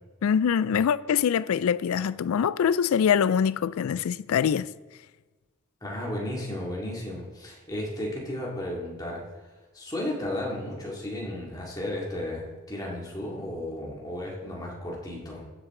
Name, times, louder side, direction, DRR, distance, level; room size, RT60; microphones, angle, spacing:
voice 1, 0.2-4.7, left 7 dB, 75° left, 0.3 m, -24 dB
voice 2, 5.8-9.2 9.7-15.4, left 1 dB, 15° left, 2.3 m, -34 dB
15.0 x 7.7 x 3.8 m
head